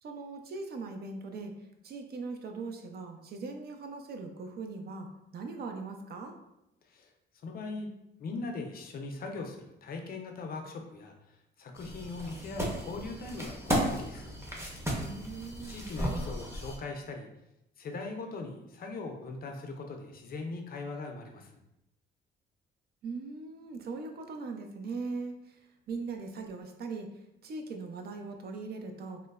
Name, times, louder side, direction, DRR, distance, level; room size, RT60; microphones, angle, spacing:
voice 1, 0.0-1.5 1.8-5.1 5.3-6.3 15.0-15.8 23.0-25.6 25.9-27.1 27.4-29.2, right 4 dB, 55° right, 4 dB, 0.4 m, -40 dB
voice 2, 7.4-7.9 8.2-11.1 11.6-14.3 15.7-17.3 17.8-21.6, left 3 dB, 50° left, 3 dB, 0.4 m, -40 dB
sound 1, 11.7-16.8, equal, 15° right, 0.6 m, -34 dB
3.0 x 2.0 x 2.3 m, 0.86 s
cardioid pair, 90°, 20 cm